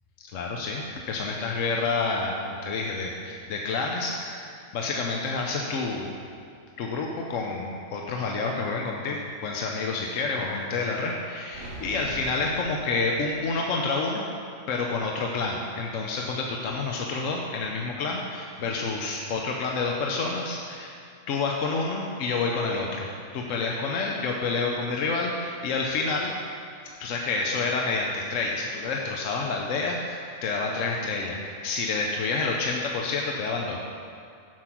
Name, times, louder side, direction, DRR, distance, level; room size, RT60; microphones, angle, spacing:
voice 1, 0.2-4.5 4.7-6.1 6.8-14.3 14.7-21.0 21.3-26.3 27.0-33.8, left 3 dB, 70° left, 0 dB, 1.1 m, -29 dB
sound 1, 11.5-13.7, right 1 dB, 40° right, 1.2 m, -41 dB
7.6 x 6.5 x 5.9 m, 2.3 s
omnidirectional pair, 1.4 m